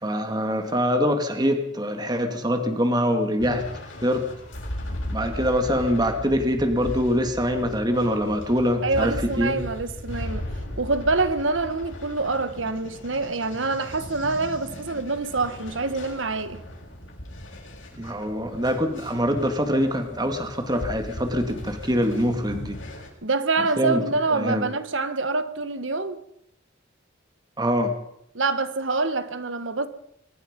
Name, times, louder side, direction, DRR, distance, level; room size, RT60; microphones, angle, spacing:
voice 1, 0.0-3.6 4.0-4.2 5.1-9.6 18.0-22.8 23.8-24.0 24.3-24.7 27.6-27.9, equal, 20° right, 2.6 m, -24 dB
sound 1, 3.4-23.1, left 1 dB, 90° left, 7.5 m, -37 dB
voice 2, 8.8-10.5 10.8-16.6 23.2-26.2 28.3-29.9, right 3 dB, 85° right, 1.7 m, -26 dB
24.0 x 20.5 x 5.5 m
head